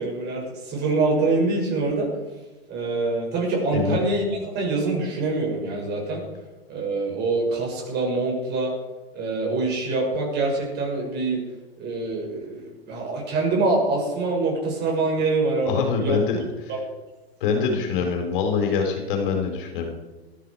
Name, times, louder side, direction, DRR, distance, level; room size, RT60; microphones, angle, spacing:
voice 1, 0.0-2.1 2.7-6.2 6.7-8.7 9.1-11.4 11.8-16.2 16.7-16.8, right 3 dB, 30° right, -1 dB, 6.8 m, -25 dB
voice 2, 15.6-16.7 17.4-19.9, left 5 dB, 55° left, 3 dB, 4.5 m, -24 dB
19.0 x 14.0 x 4.9 m, 1.2 s
hypercardioid pair, 105°, 32 cm